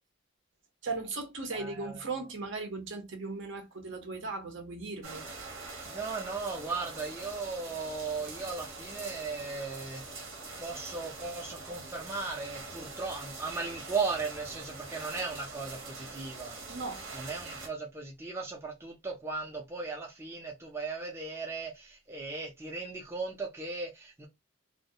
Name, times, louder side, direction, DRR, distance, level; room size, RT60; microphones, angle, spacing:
voice 1, 0.8-5.3 16.7-17.0, right 3 dB, 65° right, 0.7 m, -37 dB
voice 2, 1.5-2.0 5.9-10.0 10.6-16.6 17.1-24.3, right 4 dB, 10° right, 0.4 m, -37 dB
sound 1, 5.0-17.7, right 3 dB, 85° right, 1.1 m, -44 dB
2.3 x 2.0 x 2.6 m
head